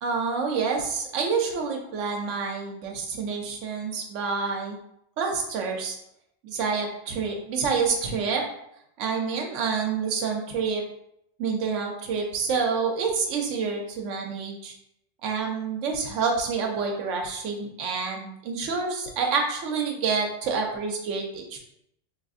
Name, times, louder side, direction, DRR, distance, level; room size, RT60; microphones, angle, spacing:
voice 1, 0.0-4.8 5.2-6.0 6.4-8.4 9.0-10.8 11.4-14.7 15.2-21.6, right 5 dB, 90° right, 2 dB, 0.9 m, -28 dB
3.8 x 2.4 x 2.5 m, 0.76 s
omnidirectional pair, 1.2 m